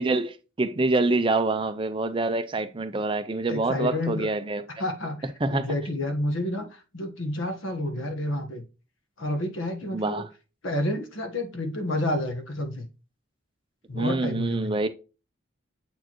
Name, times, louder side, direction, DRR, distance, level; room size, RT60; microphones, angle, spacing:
voice 1, 0.0-4.7 5.4-5.6 9.9-10.2 13.9-14.9, right 2 dB, 25° right, 0.5 m, -26 dB
voice 2, 3.5-4.3 4.8-5.2 5.5-8.6 9.2-10.2 10.6-12.8 13.9-14.7, left 1 dB, 80° left, 1.3 m, -29 dB
7.7 x 4.4 x 3.0 m
head